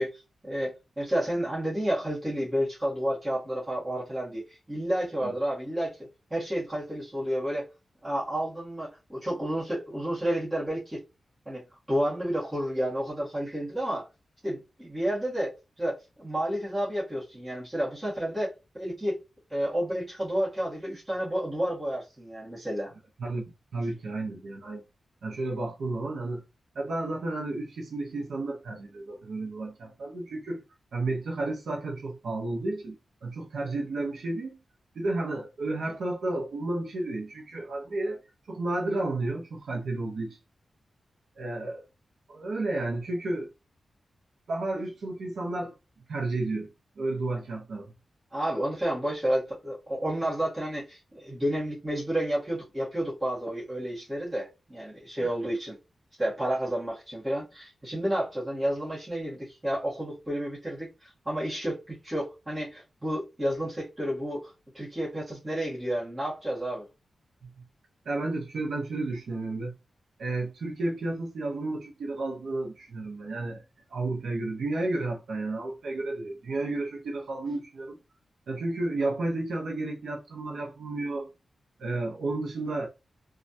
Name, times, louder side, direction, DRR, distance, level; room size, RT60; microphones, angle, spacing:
voice 1, 0.0-6.0 6.3-7.7 8.0-11.0 11.4-14.1 14.4-19.2 19.5-22.9 48.3-55.8 56.2-66.9, equal, 15° right, 1.4 m, -31 dB
voice 2, 23.7-24.8 25.2-26.4 26.7-30.6 30.9-32.9 33.2-34.6 34.9-38.2 38.5-40.4 41.4-41.8 42.3-43.5 44.5-45.7 46.1-46.7 47.0-47.9 55.2-55.3 68.1-69.7 70.2-73.6 73.9-78.0 78.5-81.3 81.8-82.9, right 2 dB, 70° right, 0.7 m, -32 dB
3.1 x 2.3 x 2.6 m
wide cardioid pair, 170°, 0 cm